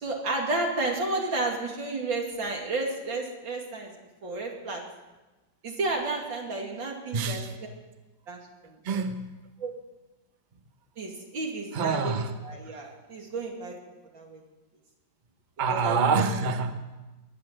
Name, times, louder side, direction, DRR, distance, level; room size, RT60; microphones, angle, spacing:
voice 1, 0.0-3.9 4.2-4.8 5.6-7.4 8.3-8.8 9.6-9.7 11.0-12.1 12.4-13.7 14.1-14.4 15.7-16.3, right 2 dB, 80° right, 0 dB, 3.3 m, -31 dB
voice 2, 7.1-7.5 8.8-9.4 11.7-12.3 15.6-16.7, right 4 dB, 30° right, 7 dB, 0.9 m, -26 dB
21.5 x 8.6 x 7.7 m, 1.1 s
omnidirectional pair, 2.1 m